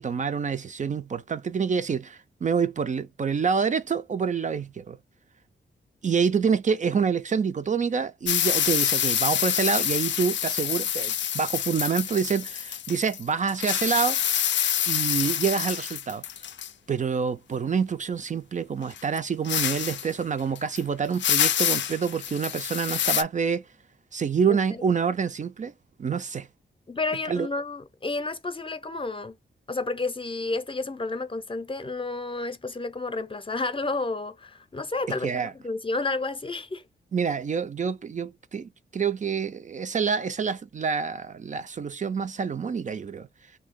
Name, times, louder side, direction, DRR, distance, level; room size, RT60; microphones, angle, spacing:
voice 1, 0.0-5.0 6.0-14.2 14.9-16.2 16.9-23.7 24.1-25.7 26.0-26.5 27.3-27.5 35.1-35.5 37.1-43.3, right 6 dB, 40° right, 0.4 m, -27 dB
sound 1, 8.3-13.2 13.5-16.7 19.0-19.1 19.4-20.1 20.6-20.8 21.1-23.2, left 10 dB, 75° left, 0.4 m, -27 dB
voice 2, 24.5-24.9 26.9-29.4 29.7-36.8, left 3 dB, 30° left, 0.6 m, -31 dB
2.7 x 2.7 x 3.6 m
cardioid pair, 65°, 19 cm